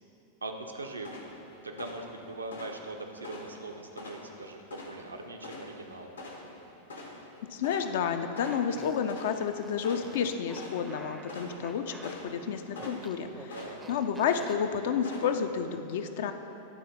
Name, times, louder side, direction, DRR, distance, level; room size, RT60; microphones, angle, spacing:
voice 1, 0.4-1.1 1.6-6.1 13.5-13.8, right 2 dB, 75° right, 4 dB, 0.6 m, -41 dB
sound 1, 1.0-15.7, left 2 dB, 75° left, 0.9 m, -46 dB
voice 2, 7.5-13.5 13.9-16.3, left 7 dB, 55° left, 8 dB, 0.4 m, -30 dB
Fart, 8.4-14.5, right 2 dB, 10° right, 0.5 m, -49 dB
10.5 x 3.9 x 4.0 m, 2.9 s
figure-of-eight pair, 90°, 0 cm